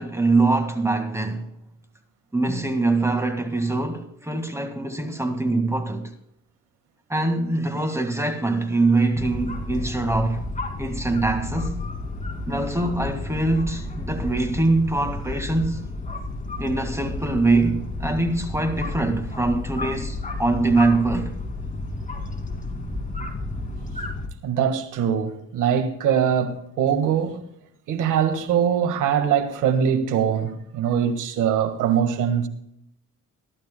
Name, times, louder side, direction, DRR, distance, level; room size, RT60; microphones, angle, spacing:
voice 1, 0.0-1.5 2.3-6.1 7.1-10.4 10.8-11.8 12.5-15.8 16.6-21.3, right 2 dB, 10° right, 1.9 m, -23 dB
sound 1, 9.1-24.3, left 2 dB, 25° left, 2.4 m, -32 dB
voice 2, 24.4-27.4 27.9-32.5, right 8 dB, 90° right, 1.7 m, -22 dB
23.0 x 11.5 x 2.2 m
cardioid pair, 90°, 30 cm